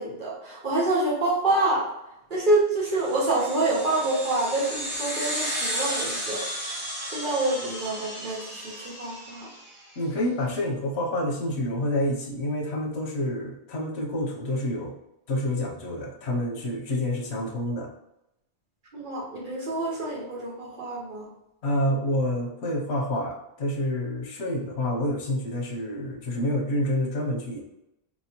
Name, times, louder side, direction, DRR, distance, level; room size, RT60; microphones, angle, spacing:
voice 1, 0.0-1.9 2.3-6.5 7.1-9.5 18.9-21.3, right 2 dB, 50° right, -3 dB, 1.1 m, -27 dB
sound 1, 2.9-9.7, equal, 30° right, 1.4 m, -33 dB
voice 2, 10.0-14.9 15.3-17.9 21.6-27.6, left 1 dB, 80° left, 0 dB, 1.1 m, -28 dB
4.4 x 2.9 x 2.9 m, 0.85 s
omnidirectional pair, 1.1 m